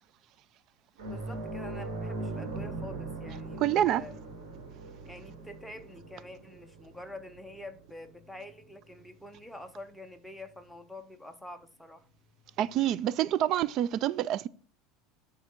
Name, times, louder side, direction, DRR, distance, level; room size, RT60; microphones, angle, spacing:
sound 1, 1.0-9.9 10.3-10.4 12.5-12.6, right 2 dB, 85° right, 2.5 m, -41 dB
voice 1, 1.1-4.1 5.1-12.1, left 1 dB, ahead, 0.7 m, -46 dB
voice 2, 3.6-4.0 12.6-14.5, right 12 dB, 50° right, 0.3 m, -27 dB
9.7 x 3.7 x 4.4 m
supercardioid pair, 130°, 0 cm